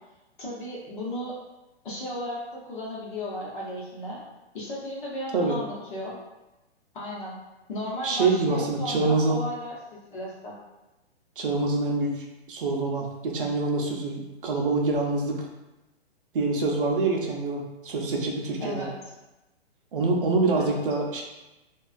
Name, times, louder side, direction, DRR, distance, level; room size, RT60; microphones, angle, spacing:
voice 1, 0.4-1.4 1.8-4.2 4.5-6.2 6.9-7.4 7.7-10.6 18.6-18.9 20.6-20.8, left 1 dB, 50° left, -5 dB, 0.8 m, -35 dB
voice 2, 8.0-9.4 11.4-15.5 16.3-18.9 19.9-21.2, right 3 dB, 55° right, 0 dB, 0.5 m, -26 dB
2.4 x 2.3 x 2.4 m, 1.0 s
hypercardioid pair, 175°, 32 cm